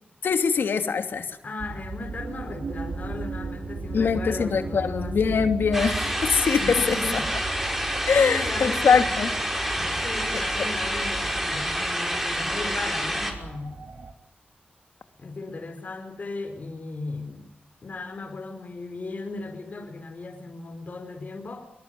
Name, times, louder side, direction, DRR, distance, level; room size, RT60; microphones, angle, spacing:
voice 1, 0.2-1.3 3.9-7.0 8.1-9.3, left 5 dB, 80° left, 8 dB, 2.8 m, -22 dB
voice 2, 1.4-5.4 6.6-7.3 7.6-9.1 9.7-13.9 15.2-17.5 17.8-21.6, left 3 dB, 45° left, 2 dB, 4.9 m, -36 dB
sound 1, 1.6-14.1, right 3 dB, 65° right, 2.4 m, -36 dB
sound 2, 5.7-13.3, equal, 5° right, 5.5 m, -28 dB
24.5 x 23.0 x 9.5 m, 0.76 s
wide cardioid pair, 110°, 4 cm